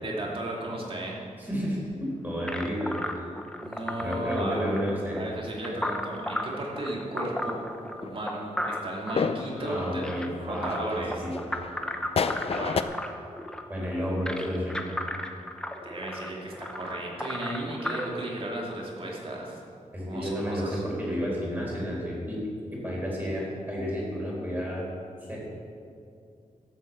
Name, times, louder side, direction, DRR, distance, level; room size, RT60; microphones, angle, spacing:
voice 1, 0.0-1.2 3.6-4.6 5.1-7.6 8.0-10.0 10.4-11.1 12.5-12.8 15.8-19.6 20.1-20.8, right 1 dB, 40° right, -3 dB, 2.6 m, -34 dB
voice 2, 1.4-3.3 4.0-5.2 9.6-11.4 13.7-14.8 19.9-22.4 22.7-24.8 25.3-25.4, equal, 15° right, -4 dB, 4.0 m, -31 dB
sound 1, 2.5-18.0, left 1 dB, 5° left, 0.8 m, -35 dB
sound 2, 4.5-6.5 6.8-7.2 7.5-12.8, left 5 dB, 45° left, 0.5 m, -34 dB
13.0 x 7.9 x 8.0 m, 2.4 s
wide cardioid pair, 175°, 14 cm